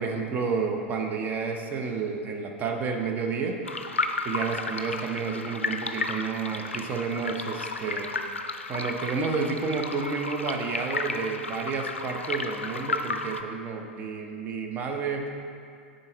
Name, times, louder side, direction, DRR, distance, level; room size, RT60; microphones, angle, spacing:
voice 1, 0.0-3.6 4.2-8.1 8.7-15.3, right 5 dB, 25° right, 3 dB, 0.7 m, -30 dB
sound 1, 3.6-13.4, left 3 dB, 80° left, 0.4 m, -33 dB
9.7 x 4.0 x 3.9 m, 2.4 s
figure-of-eight pair, 95°, 7 cm